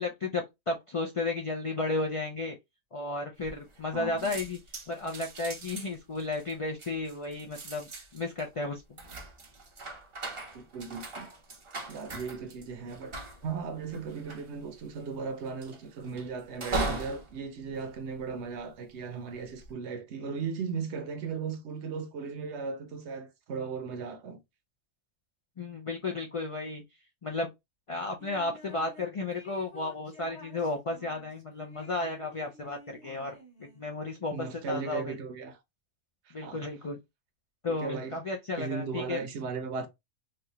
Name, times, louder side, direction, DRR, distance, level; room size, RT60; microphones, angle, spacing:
voice 1, 0.0-2.6 2.9-4.6 4.9-9.0 25.6-26.8 27.2-27.5 27.9-35.1 36.3-37.0 37.6-39.2, left 2 dB, 55° left, 0.3 m, -33 dB
sound 1, 3.4-3.9 4.2-18.7 19.3-19.7, right 2 dB, 40° right, 0.5 m, -40 dB
voice 2, 3.9-4.4 10.5-11.3 11.9-13.1 13.4-24.4 33.1-33.2 34.3-35.6 36.3-36.6 37.7-38.2 38.6-39.9, right 5 dB, 65° right, 0.9 m, -37 dB
sound 2, 28.2-29.0 29.3-34.0, left 2 dB, 35° left, 1.3 m, -51 dB
3.3 x 2.4 x 2.7 m
omnidirectional pair, 1.3 m